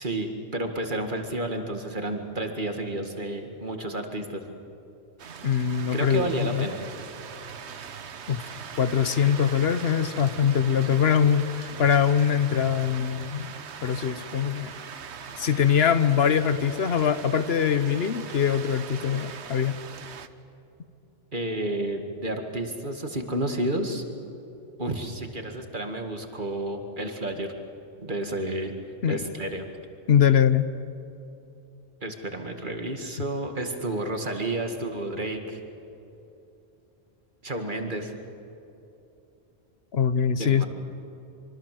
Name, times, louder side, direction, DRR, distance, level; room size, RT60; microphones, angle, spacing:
voice 1, 0.0-4.4 5.9-6.8 21.3-24.0 24.8-27.5 28.0-28.7 29.1-29.7 32.0-35.6 37.4-38.1 40.4-40.7, right 1 dB, 45° right, 5 dB, 2.2 m, -31 dB
Light rain, 5.2-20.3, right 7 dB, 80° right, 1.2 m, -41 dB
voice 2, 5.4-6.7 8.3-13.5 13.8-14.7 15.4-19.8 29.0-29.2 30.1-30.6 39.9-40.6, left 8 dB, 65° left, 13 dB, 1.1 m, -23 dB
26.0 x 24.0 x 7.7 m, 2.9 s
omnidirectional pair, 1.1 m